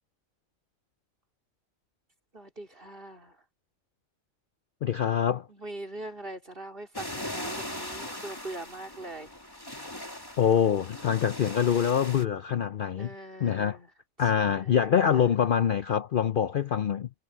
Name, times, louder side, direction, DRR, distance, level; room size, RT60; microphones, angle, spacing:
voice 1, 2.3-3.3 5.5-9.3 12.9-13.9 14.4-15.3, right 2 dB, 40° right, 4.4 m, -42 dB
voice 2, 4.8-5.5 10.4-13.1 13.4-13.8 14.2-17.1, left 8 dB, 55° left, 0.6 m, -25 dB
sound 1, 6.9-12.2, left 1 dB, 15° left, 2.7 m, -39 dB
omnidirectional pair, 1.4 m